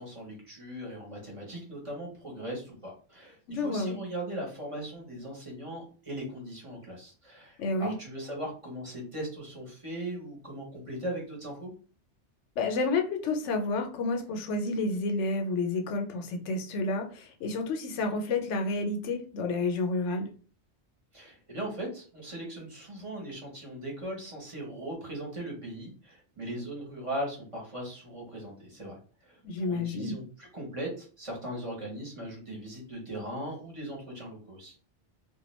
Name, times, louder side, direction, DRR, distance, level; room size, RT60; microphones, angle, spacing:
voice 1, 0.0-11.7 21.1-29.0 29.2-34.7, right 1 dB, 30° right, -2 dB, 0.8 m, -39 dB
voice 2, 3.5-4.0 7.6-8.0 12.6-20.3 29.4-30.2, left 3 dB, 85° left, 4 dB, 0.9 m, -30 dB
2.2 x 2.2 x 3.0 m, 0.39 s
omnidirectional pair, 1.2 m